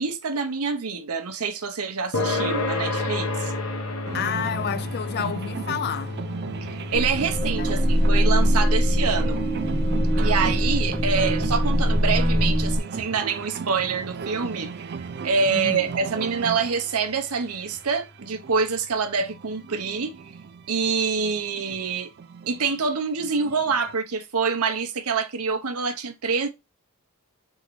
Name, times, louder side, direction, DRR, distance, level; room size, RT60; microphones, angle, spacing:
voice 1, 0.0-3.5 6.6-9.4 10.2-14.7 15.2-20.1 20.7-22.1 22.5-26.5, right 5 dB, 80° right, 0.8 m, -26 dB
sound 1, 2.1-17.0, left 2 dB, 65° left, 1.0 m, -33 dB
voice 2, 4.1-6.1 7.6-7.8 15.5-15.9, left 8 dB, 45° left, 0.4 m, -29 dB
sound 2, 4.1-24.0, right 6 dB, 50° right, 0.4 m, -37 dB
sound 3, 6.9-12.8, equal, 10° right, 0.9 m, -22 dB
3.9 x 3.6 x 3.1 m
head